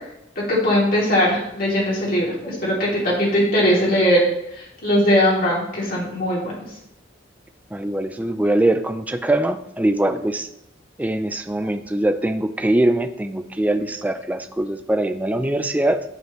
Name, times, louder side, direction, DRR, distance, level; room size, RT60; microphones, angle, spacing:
voice 1, 0.4-4.2 4.8-6.5, equal, 50° left, -5 dB, 2.8 m, -19 dB
voice 2, 7.7-10.5 11.0-16.0, right 1 dB, 10° right, 7 dB, 0.4 m, -22 dB
11.0 x 4.9 x 3.1 m, 0.79 s
head